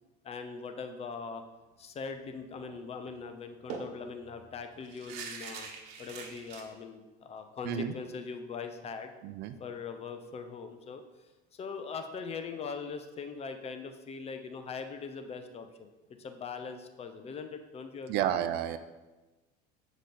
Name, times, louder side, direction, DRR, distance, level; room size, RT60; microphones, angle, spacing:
voice 1, 0.2-1.4 1.8-5.7 6.0-9.1 9.6-11.0 11.5-18.3, left 5 dB, 30° left, 7 dB, 0.7 m, -41 dB
sound 1, 2.6-2.8 3.1-3.2 3.7-6.6, right 5 dB, 75° right, 1.2 m, -43 dB
voice 2, 9.2-9.5 18.1-18.8, right 10 dB, 55° right, 10 dB, 0.6 m, -31 dB
7.9 x 5.1 x 4.3 m, 1.1 s
supercardioid pair, 120°, 20 cm